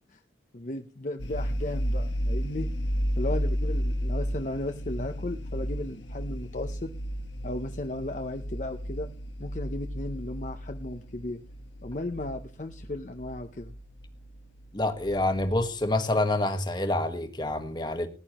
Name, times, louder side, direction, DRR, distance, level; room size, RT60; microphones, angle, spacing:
voice 1, 0.5-2.7 3.2-6.9 7.4-9.1 9.4-11.4 11.8-13.7, left 2 dB, 40° left, 0.7 m, -35 dB
sound 1, 1.2-15.9, equal, 80° left, 1.4 m, -33 dB
voice 2, 14.7-18.1, left 2 dB, 25° left, 1.4 m, -27 dB
19.5 x 10.5 x 3.0 m
head